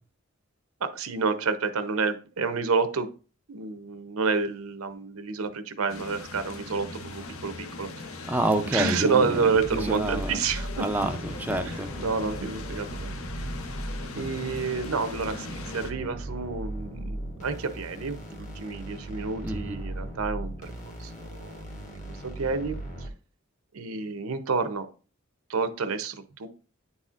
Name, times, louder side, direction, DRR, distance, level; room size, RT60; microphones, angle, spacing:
voice 1, 0.8-3.1 3.5-8.1 8.7-10.9 11.6-13.2 14.2-20.7 21.0-21.6 22.1-23.1 23.7-24.9 25.5-26.5, right 4 dB, 90° right, 10 dB, 0.7 m, -29 dB
sound 1, 5.9-15.9, left 3 dB, 75° left, 0.7 m, -40 dB
voice 2, 8.3-9.4 9.7-10.4 10.8-11.9 19.4-19.8, right 1 dB, 10° right, 5 dB, 0.4 m, -28 dB
sound 2, 9.5-23.1, right 1 dB, 35° left, 1.2 m, -38 dB
9.5 x 4.2 x 2.4 m, 0.36 s
head